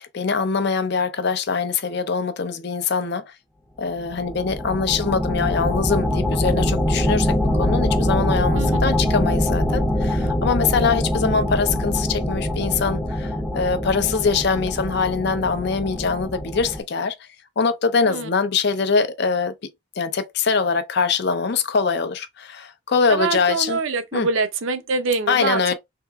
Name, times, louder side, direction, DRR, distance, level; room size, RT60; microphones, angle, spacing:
voice 1, 0.0-3.3 3.8-17.2 17.6-19.5 20.0-23.8 24.1-24.3 25.3-25.7, left 5 dB, 50° left, 0.5 m, -23 dB
sound 1, 4.0-16.8, left 1 dB, ahead, 0.5 m, -23 dB
voice 2, 23.1-25.7, right 4 dB, 70° right, 0.6 m, -24 dB
3.6 x 2.8 x 2.3 m
head